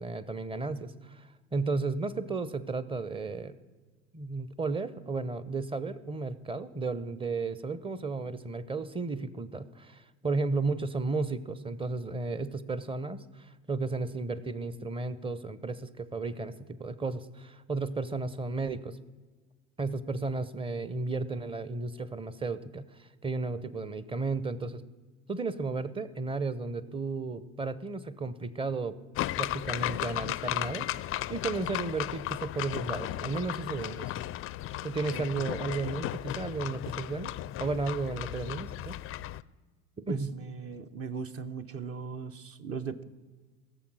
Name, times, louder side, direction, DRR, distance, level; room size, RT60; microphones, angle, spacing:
voice 1, 0.0-3.5 4.1-19.0 19.8-24.8 25.3-29.0 29.4-30.9 31.3-34.1 34.8-37.3 37.6-39.0 40.0-40.3, right 3 dB, 15° right, 15 dB, 0.8 m, -34 dB
sound 1, 29.2-39.4, left 15 dB, 40° left, 0.4 m, -35 dB
voice 2, 35.1-35.6 40.1-43.0, right 6 dB, 40° right, 9 dB, 1.0 m, -39 dB
16.5 x 7.2 x 6.2 m, 1.3 s
hypercardioid pair, 80°, 36 cm